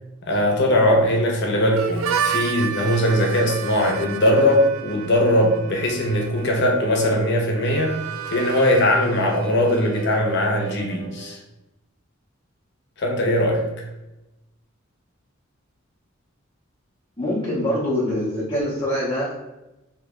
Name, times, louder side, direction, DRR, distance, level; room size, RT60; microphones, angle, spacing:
voice 1, 0.3-7.9 8.3-11.4 13.0-13.6, left 1 dB, 55° left, 1 dB, 0.8 m, -20 dB
Harmonica, 1.8-11.4, right 8 dB, 80° right, 0.4 m, -32 dB
voice 2, 17.2-19.3, left 1 dB, 25° left, -7 dB, 0.8 m, -24 dB
3.2 x 2.8 x 3.6 m, 0.97 s
head